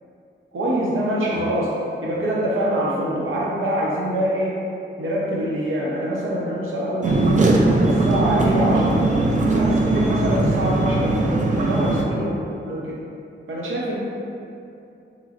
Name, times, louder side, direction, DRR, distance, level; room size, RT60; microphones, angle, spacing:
voice 1, 0.5-4.6 5.0-7.5 7.9-9.1 9.4-12.3 12.7-13.0 13.5-14.0, right 1 dB, 75° right, -4 dB, 0.8 m, -24 dB
sound 1, 7.0-12.0, right 2 dB, 40° right, 0.4 m, -19 dB
3.8 x 3.1 x 2.5 m, 2.6 s
wide cardioid pair, 130°, 21 cm